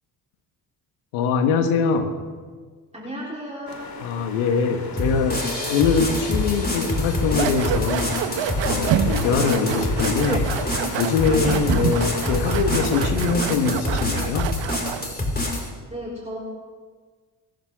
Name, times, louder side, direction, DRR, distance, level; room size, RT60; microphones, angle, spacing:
voice 1, 1.1-2.1 4.0-5.4 5.7-8.2 8.7-10.5 11.0-14.5, left 5 dB, 85° left, 7 dB, 1.6 m, -23 dB
voice 2, 2.9-3.9 9.4-9.8 11.3-11.6 15.9-16.4, equal, 15° right, -5 dB, 3.9 m, -34 dB
sound 1, 3.7-13.1, left 4 dB, 50° left, 2.3 m, -37 dB
sound 2, 5.0-15.7, left 2 dB, 20° left, 4.9 m, -26 dB
sound 3, 7.3-15.1, right 10 dB, 65° right, 1.1 m, -27 dB
23.5 x 12.0 x 3.7 m, 1.5 s
hypercardioid pair, 45°, 46 cm